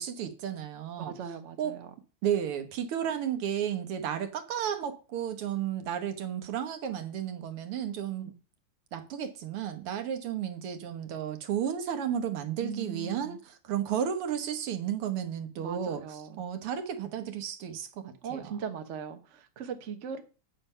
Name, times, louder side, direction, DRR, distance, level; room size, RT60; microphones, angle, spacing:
voice 1, 0.0-1.1 1.6-1.8 2.2-8.3 8.9-18.5, right 9 dB, 80° right, 2.0 m, -33 dB
voice 2, 1.0-1.9 8.2-8.4 12.6-13.4 15.6-16.4 18.2-20.2, right 7 dB, 45° right, 1.0 m, -39 dB
8.5 x 5.6 x 5.5 m
omnidirectional pair, 2.4 m